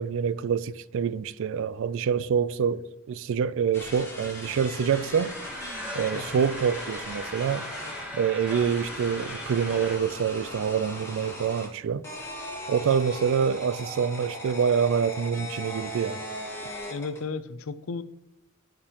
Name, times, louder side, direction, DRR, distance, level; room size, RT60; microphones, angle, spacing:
voice 1, 0.0-5.3 5.9-7.6 8.1-12.0 12.7-16.2, right 7 dB, 65° right, 0.3 m, -26 dB
sound 1, 3.7-8.0 8.5-11.7 12.0-17.2, equal, 15° left, 3.1 m, -39 dB
sound 2, 4.9-10.0, left 1 dB, 5° right, 1.6 m, -39 dB
voice 2, 6.1-6.5 16.9-18.0, left 4 dB, 70° left, 0.5 m, -34 dB
12.5 x 5.2 x 2.9 m
head